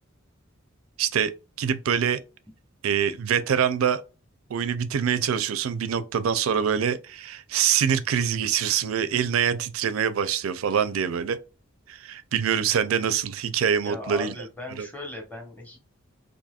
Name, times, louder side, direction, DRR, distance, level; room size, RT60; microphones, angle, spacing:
voice 1, 1.0-2.2 2.8-4.0 4.5-11.4 11.9-14.3 14.8-14.9, right 8 dB, 80° right, 0.4 m, -25 dB
voice 2, 13.8-15.8, left 2 dB, 10° left, 1.0 m, -37 dB
4.1 x 2.6 x 2.3 m
head